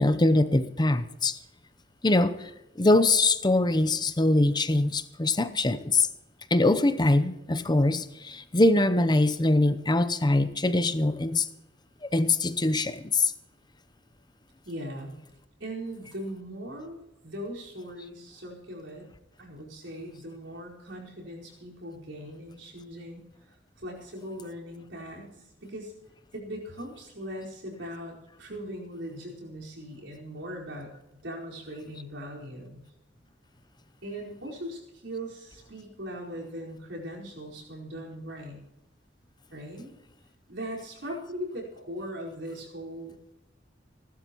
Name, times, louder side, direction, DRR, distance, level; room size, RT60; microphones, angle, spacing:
voice 1, 0.0-1.4 2.0-2.5 2.8-6.1 6.5-11.5 12.1-13.3, left 2 dB, 25° left, 0.7 m, -23 dB
voice 2, 14.6-15.1 15.6-19.1 19.4-23.2 23.8-25.9 26.3-32.8 34.0-38.6 39.5-39.9 40.5-43.1, equal, 80° right, 4.8 m, -39 dB
30.0 x 12.5 x 3.1 m
head